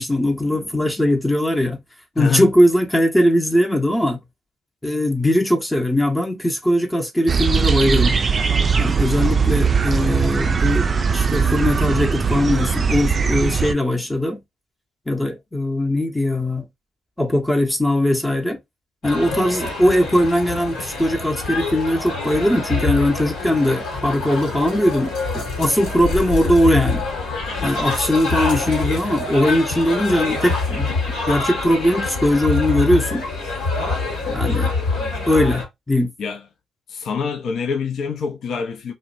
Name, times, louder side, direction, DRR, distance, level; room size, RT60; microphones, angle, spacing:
voice 1, 0.0-1.8 2.2-4.2 4.8-8.2 8.8-14.4 15.1-16.7 17.2-18.6 19.0-27.1 27.6-30.9 31.3-33.2 34.3-34.7 35.3-36.1, left 1 dB, 10° left, 0.6 m, -20 dB
voice 2, 2.2-2.5 19.2-19.5 27.6-27.8 36.2-36.4 36.9-38.9, left 6 dB, 65° left, 0.4 m, -26 dB
sound 1, 7.3-13.7, right 5 dB, 40° right, 0.4 m, -19 dB
sound 2, 19.0-35.7, left 3 dB, 80° left, 1.1 m, -25 dB
2.5 x 2.1 x 2.5 m
hypercardioid pair, 50°, 0 cm